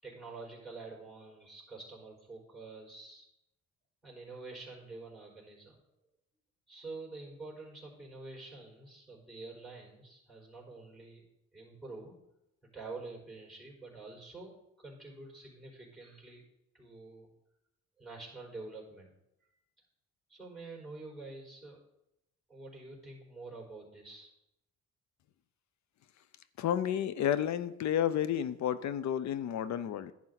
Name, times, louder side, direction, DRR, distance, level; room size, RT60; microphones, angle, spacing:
voice 1, 0.0-3.2 4.0-5.7 6.7-11.2 11.5-12.2 12.7-16.4 16.7-17.3 18.0-19.1 20.3-21.8 22.5-24.3, right 3 dB, 5° left, -5 dB, 4.4 m, -47 dB
voice 2, 26.6-30.1, left 10 dB, 65° left, 15 dB, 0.7 m, -31 dB
11.0 x 8.6 x 4.0 m, 0.85 s
cardioid pair, 90°, 30 cm